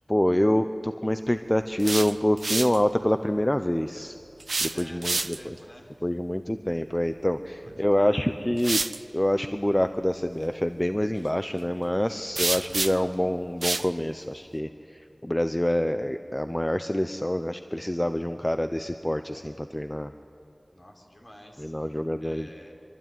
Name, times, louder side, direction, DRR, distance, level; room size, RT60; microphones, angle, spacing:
voice 1, 0.1-4.2 4.6-5.6 6.0-8.8 9.1-20.1 21.6-22.5, left 1 dB, 20° left, 9 dB, 0.8 m, -26 dB
sound 1, 1.6-2.8 4.4-5.6 7.6-7.8 8.6-9.0 12.4-13.1 13.6-13.9, right 3 dB, 85° right, 0.7 m, -28 dB
voice 2, 4.7-5.9 7.6-8.3 12.5-13.1 20.7-22.7, left 1 dB, 45° left, 1 dB, 4.4 m, -49 dB
24.0 x 23.5 x 9.4 m, 2.6 s
wide cardioid pair, 45°, 0 cm